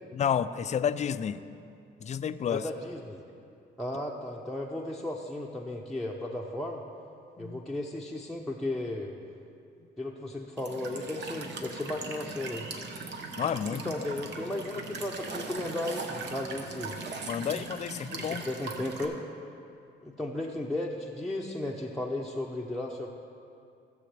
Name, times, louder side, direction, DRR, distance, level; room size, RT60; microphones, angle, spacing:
voice 1, 0.1-1.4 2.0-2.7 7.4-7.6 13.4-13.9 17.3-18.4, left 8 dB, 35° left, 13 dB, 0.4 m, -30 dB
voice 2, 2.5-3.2 3.8-6.8 7.4-9.1 10.0-12.7 13.7-17.0 18.2-19.2 20.0-23.1, left 1 dB, ahead, -3 dB, 0.7 m, -35 dB
Walk footsteps / Chirp tweet / Stream, 10.6-19.1, right 3 dB, 60° right, 1.0 m, -39 dB
16.5 x 7.0 x 3.4 m, 2.6 s
cardioid pair, 90°, 20 cm